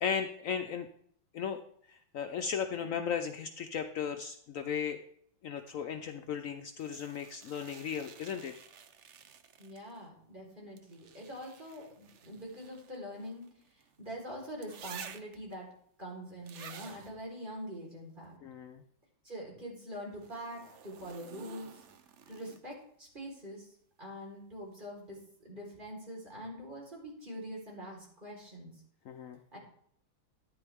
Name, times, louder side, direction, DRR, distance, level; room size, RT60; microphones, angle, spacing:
voice 1, 0.0-0.9 1.3-1.6 1.9-5.0 5.4-8.6 18.4-18.8 29.1-29.4, left 7 dB, 85° left, 6 dB, 0.7 m, -36 dB
sound 1, 6.8-10.0 10.8-13.9 14.6-15.5 16.5-17.1 20.1-22.8 24.7-24.8, right 7 dB, 65° right, 0.7 m, -52 dB
voice 2, 9.6-15.7 16.0-18.4 19.2-21.8 22.3-23.7 24.0-25.2 25.4-28.7 29.5-29.6, equal, 25° right, -2 dB, 4.3 m, -44 dB
14.0 x 9.9 x 3.6 m, 0.65 s
omnidirectional pair, 2.2 m